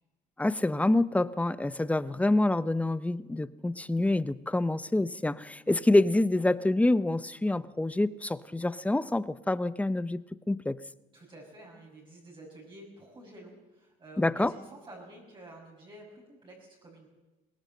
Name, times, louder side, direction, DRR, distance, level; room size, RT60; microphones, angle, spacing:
voice 1, 0.4-10.2 10.5-10.8 14.2-14.5, left 2 dB, 10° left, 15 dB, 0.6 m, -27 dB
voice 2, 11.1-17.1, right 1 dB, 30° right, -2 dB, 6.0 m, -50 dB
22.0 x 18.0 x 7.5 m, 1.1 s
cardioid pair, 110°, 17 cm